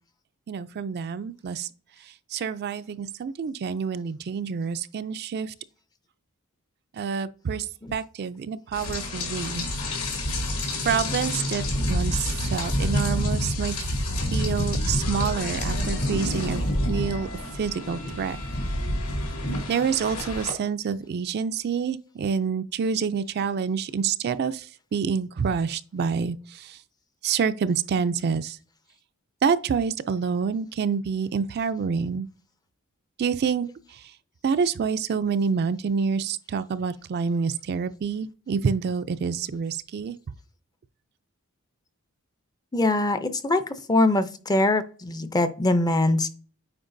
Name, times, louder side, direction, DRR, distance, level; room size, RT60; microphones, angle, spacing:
voice 1, 0.5-1.7 2.0-5.5 6.9-9.7 10.9-13.8 14.3-17.3 17.5-18.4 19.7-26.8 27.2-28.6 29.4-32.3 33.2-34.1 34.4-40.2, right 6 dB, 45° right, 0.3 m, -27 dB
Rain, 8.7-20.5, left 1 dB, 70° left, 2.4 m, -28 dB
voice 2, 42.7-43.6 43.9-46.3, left 2 dB, 15° left, 0.5 m, -22 dB
8.8 x 4.7 x 2.6 m
head